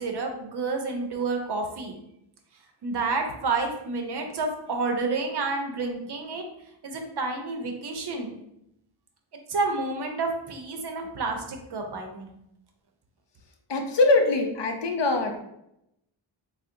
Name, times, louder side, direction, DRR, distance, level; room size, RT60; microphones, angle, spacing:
voice 1, 0.0-2.0 2.8-6.4 6.8-8.4 9.5-12.4, right 3 dB, 55° right, 3 dB, 0.6 m, -29 dB
voice 2, 13.7-15.4, left 2 dB, 60° left, 4 dB, 0.6 m, -22 dB
3.7 x 2.1 x 2.6 m, 0.82 s
wide cardioid pair, 90°, 49 cm